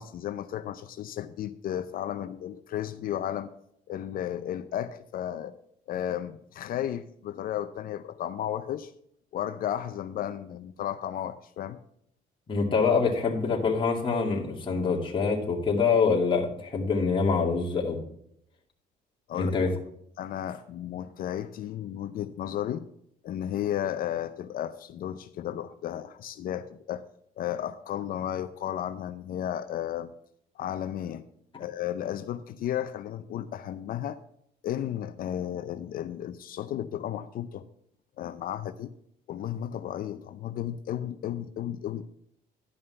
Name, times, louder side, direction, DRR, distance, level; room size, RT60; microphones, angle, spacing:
voice 1, 0.0-3.5 3.9-5.5 5.9-8.9 9.3-11.8 19.3-19.5 20.2-22.9 23.2-27.0 27.4-30.1 30.6-31.3 31.6-34.2 34.6-37.6 38.2-38.9 39.3-42.1, left 11 dB, 60° left, 11 dB, 0.6 m, -33 dB
voice 2, 12.5-18.0 19.3-19.7, left 5 dB, 30° left, -1 dB, 2.3 m, -25 dB
11.5 x 5.5 x 5.7 m, 0.71 s
cardioid pair, 110°, 17 cm